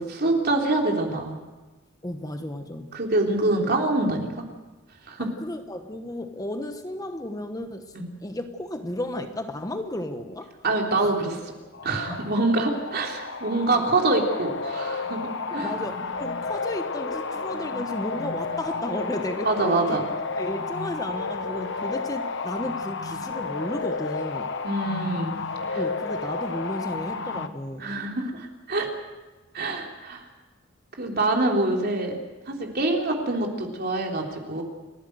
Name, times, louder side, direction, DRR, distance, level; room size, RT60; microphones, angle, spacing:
voice 1, 0.0-1.3 2.9-4.4 5.1-5.3 7.9-8.1 10.6-11.4 11.8-15.2 15.5-15.7 19.4-20.0 24.6-25.3 25.7-25.8 27.8-28.9 29.5-30.2 31.0-32.2 32.5-34.6, right 2 dB, 50° right, 1 dB, 3.5 m, -25 dB
voice 2, 2.0-2.9 5.2-7.9 8.2-10.5 11.0-11.1 12.1-12.2 13.7-13.9 15.5-20.0 20.4-24.5 25.8-27.9, left 1 dB, 20° left, 7 dB, 1.2 m, -33 dB
sound 1, 11.7-27.5, left 4 dB, 65° left, 1.2 m, -32 dB
30.0 x 11.5 x 7.9 m, 1.2 s
head